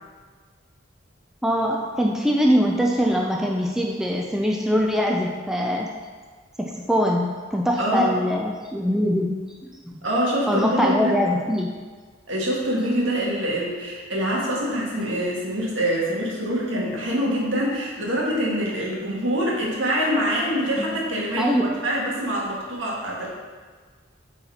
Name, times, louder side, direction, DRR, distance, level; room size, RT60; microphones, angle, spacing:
voice 1, 1.4-5.9 6.6-9.3 9.6-10.0 10.5-11.7 20.8-20.9 21.4-21.8, equal, 5° right, -1 dB, 0.4 m, -23 dB
voice 2, 7.8-8.1 10.0-11.2 12.3-23.3, equal, 70° right, -4 dB, 1.8 m, -25 dB
8.3 x 4.1 x 4.3 m, 1.5 s
head